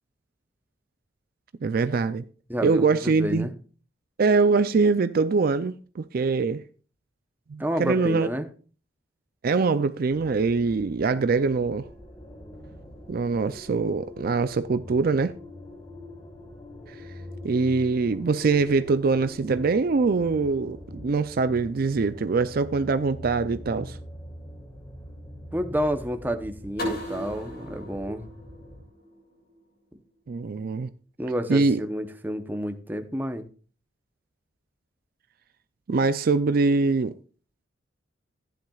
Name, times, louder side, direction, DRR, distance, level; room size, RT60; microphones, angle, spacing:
voice 1, 1.6-2.2 2.6-3.5 4.2-6.6 7.5-8.3 9.4-11.9 13.1-15.3 17.4-24.0 30.3-30.9 31.5-31.8 35.9-37.1, right 4 dB, 50° right, 0.4 m, -23 dB
voice 2, 2.5-3.5 7.6-8.5 25.5-28.2 31.2-33.5, equal, 10° right, 0.8 m, -29 dB
sound 1, 10.1-28.8, left 1 dB, 25° left, 1.6 m, -43 dB
sound 2, 26.8-29.6, left 1 dB, 55° left, 6.7 m, -36 dB
14.5 x 10.5 x 2.4 m
head